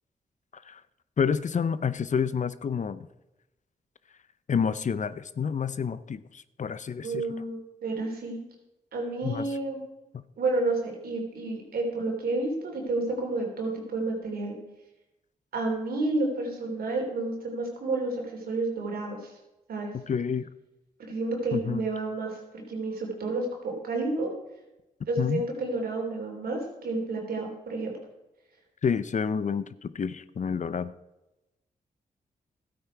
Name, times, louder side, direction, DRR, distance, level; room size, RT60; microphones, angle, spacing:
voice 1, 1.2-3.1 4.5-7.2 9.2-9.5 10.1-10.2 19.9-20.5 21.5-21.8 25.2-25.4 28.8-30.9, left 6 dB, 55° left, 16 dB, 0.6 m, -29 dB
voice 2, 7.0-8.4 8.9-9.8 10.4-14.5 15.5-19.3 19.7-19.9 21.0-24.3 25.1-27.9, right 2 dB, 80° right, 1 dB, 3.1 m, -30 dB
12.5 x 8.7 x 4.6 m, 0.98 s
cardioid pair, 50°, 15 cm